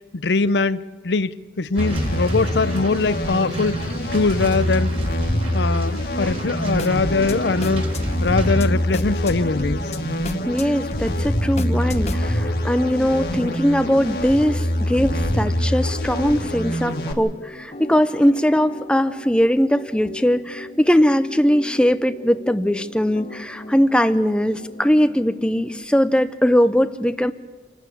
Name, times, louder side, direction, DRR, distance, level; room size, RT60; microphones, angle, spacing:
voice 1, 0.1-0.8 1.0-3.8 4.1-4.9 5.5-7.9 8.2-9.9, left 3 dB, 80° left, 0.7 m, -21 dB
sound 1, 1.7-8.6, equal, 35° right, 3.4 m, -32 dB
sound 2, 1.8-17.1, equal, 60° left, 1.9 m, -25 dB
sound 3, 6.7-25.8, left 1 dB, 40° left, 1.1 m, -35 dB
voice 2, 10.5-27.3, equal, 5° left, 0.6 m, -20 dB
27.5 x 12.5 x 8.5 m
head